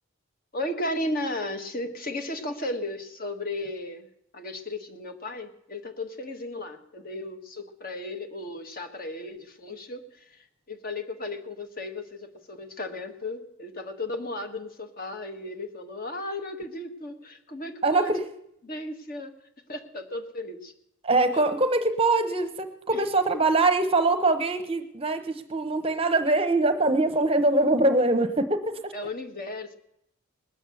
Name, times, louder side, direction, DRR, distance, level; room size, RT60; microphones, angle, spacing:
voice 1, 0.5-4.1 4.3-18.1 18.6-19.3 19.7-20.7 22.9-23.0 28.9-29.7, left 1 dB, 40° left, 6 dB, 1.5 m, -35 dB
voice 2, 17.8-18.3 21.0-28.9, right 2 dB, 25° right, 9 dB, 0.8 m, -23 dB
20.0 x 8.5 x 6.9 m, 0.77 s
head